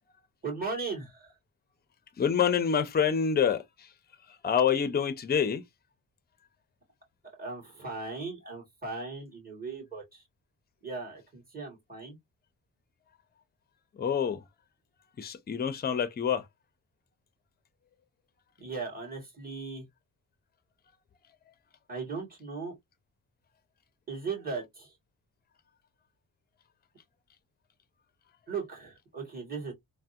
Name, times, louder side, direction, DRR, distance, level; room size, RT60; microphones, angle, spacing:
voice 1, 0.4-1.3 7.4-10.2 10.8-12.2 18.6-19.9 21.9-22.7 24.1-25.0 28.5-29.7, right 4 dB, 25° right, 2.1 m, -37 dB
voice 2, 2.2-3.9 4.4-5.6 14.0-14.4 15.2-16.5, left 7 dB, 25° left, 0.5 m, -27 dB
3.4 x 2.1 x 2.6 m
cardioid pair, 120°, 36 cm